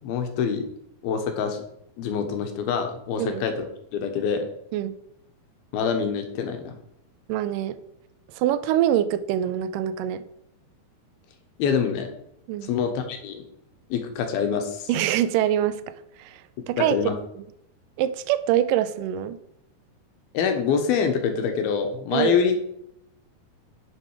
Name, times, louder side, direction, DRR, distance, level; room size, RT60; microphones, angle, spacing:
voice 1, 0.0-0.7 1.0-1.6 2.0-3.6 3.9-4.5 5.7-6.7 11.6-12.1 12.6-13.4 13.9-14.9 16.8-17.1 20.3-22.6, left 6 dB, 85° left, 6 dB, 3.1 m, -25 dB
voice 2, 7.3-7.8 8.4-10.2 12.5-12.7 14.9-15.8 16.2-16.3 16.7-17.0 18.0-19.4 22.1-22.4, right 11 dB, 80° right, 13 dB, 2.0 m, -24 dB
10.5 x 7.3 x 4.8 m, 0.76 s
omnidirectional pair, 4.3 m